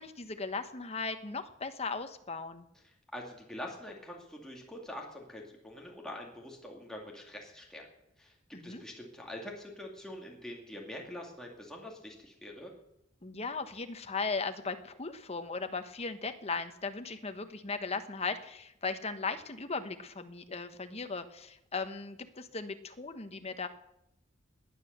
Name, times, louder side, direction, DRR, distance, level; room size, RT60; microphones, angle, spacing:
voice 1, 0.0-2.6 8.5-8.8 13.2-23.7, left 4 dB, 35° left, 8 dB, 1.1 m, -37 dB
voice 2, 3.1-7.9 8.2-12.7, left 1 dB, 5° left, -1 dB, 2.2 m, -45 dB
18.5 x 9.9 x 6.6 m, 0.85 s
head